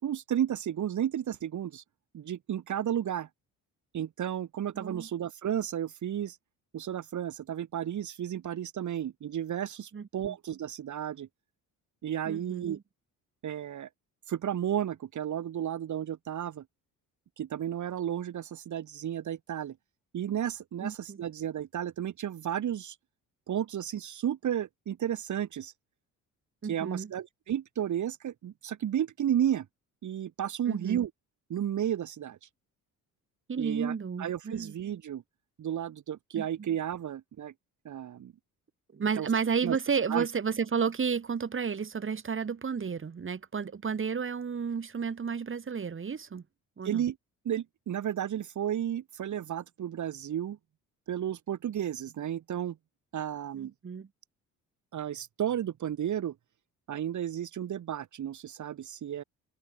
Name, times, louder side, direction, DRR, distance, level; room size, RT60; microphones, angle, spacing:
voice 1, 0.0-1.8 2.1-3.3 3.9-6.4 6.7-11.3 12.0-12.8 13.4-13.9 14.3-16.6 17.4-19.8 20.1-23.0 23.5-25.7 26.6-29.7 30.0-31.1 31.5-32.5 33.6-35.2 35.6-37.5 37.8-38.3 39.2-39.3 39.6-39.8 40.1-40.3 46.8-47.2 47.4-50.6 51.1-52.8 53.1-53.7 54.9-56.3 56.9-59.2, right 10 dB, 60° right, 4.3 m, -33 dB
voice 2, 4.8-5.1 9.9-10.3 12.3-12.8 20.8-21.2 26.6-27.1 30.7-31.0 33.5-34.7 36.4-36.5 38.9-46.4 46.8-47.0 53.5-54.1, right 6 dB, 40° right, 5.9 m, -32 dB
cardioid pair, 95°, 33 cm